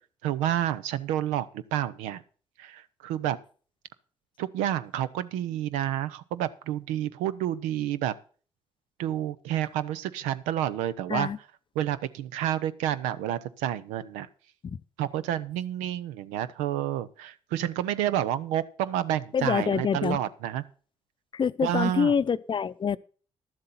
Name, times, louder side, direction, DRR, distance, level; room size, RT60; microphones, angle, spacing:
voice 1, 0.2-2.2 2.6-3.4 4.4-8.1 9.0-11.3 11.8-14.3 15.0-20.6 21.6-22.1, right 12 dB, 85° right, 0.6 m, -29 dB
voice 2, 19.3-20.2 21.3-23.0, left 7 dB, 40° left, 0.6 m, -26 dB
11.5 x 7.6 x 5.7 m
supercardioid pair, 55°, 12 cm